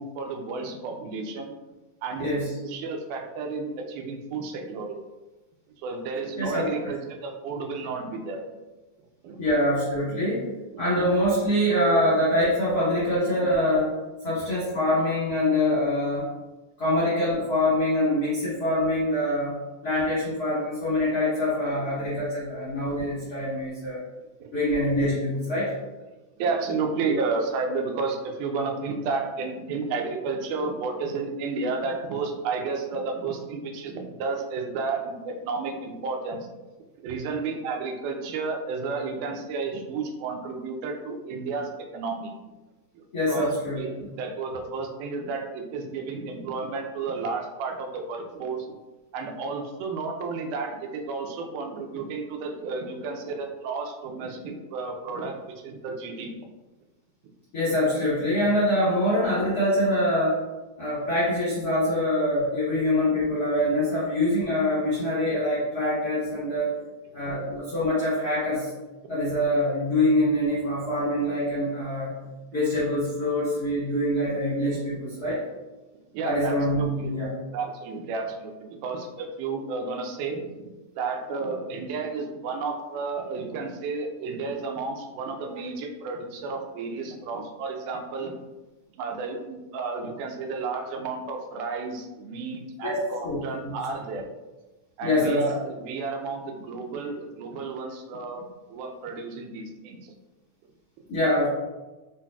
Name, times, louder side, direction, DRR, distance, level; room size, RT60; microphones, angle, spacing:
voice 1, 0.0-1.5 2.0-5.0 5.8-8.5 9.0-9.4 10.7-10.8 21.7-21.8 22.1-22.2 24.4-24.5 25.5-25.6 26.4-36.5 37.0-42.3 42.9-48.8 49.1-56.3 66.3-66.4 67.2-67.4 76.1-77.1 77.5-80.7 81.0-88.3 89.0-94.2 95.0-100.1, right 4 dB, 90° right, 3 dB, 2.1 m, -32 dB
voice 2, 6.4-6.9 9.4-10.5 10.8-13.9 14.2-16.3 16.8-19.5 19.8-24.0 24.5-25.7 27.1-27.2 43.1-43.8 57.5-60.4 60.8-66.7 67.1-68.7 69.1-72.1 72.5-75.4 76.2-77.3 92.8-93.0 93.2-93.4 93.6-93.7 95.0-95.4 101.1-101.5, left 1 dB, 60° left, -11 dB, 1.0 m, -24 dB
5.3 x 2.5 x 2.3 m, 1.1 s
omnidirectional pair, 3.5 m